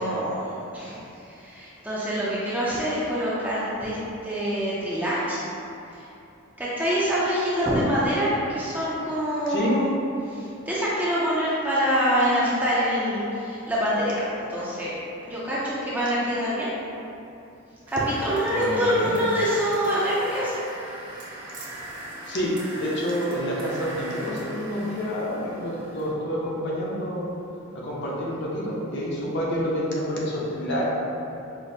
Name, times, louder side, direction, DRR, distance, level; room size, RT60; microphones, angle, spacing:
voice 1, 0.0-4.0 4.2-5.4 5.9-6.1 6.6-9.9 10.2-15.0 15.3-16.7 17.9-20.6, equal, 10° right, -8 dB, 0.4 m, -25 dB
voice 2, 9.5-9.8 18.6-19.2 22.3-27.3 27.7-30.8, equal, 50° left, -5 dB, 0.6 m, -28 dB
sound 1, 17.9-26.1, right 1 dB, 55° right, 0.9 m, -40 dB
5.0 x 2.0 x 2.6 m, 2.7 s
head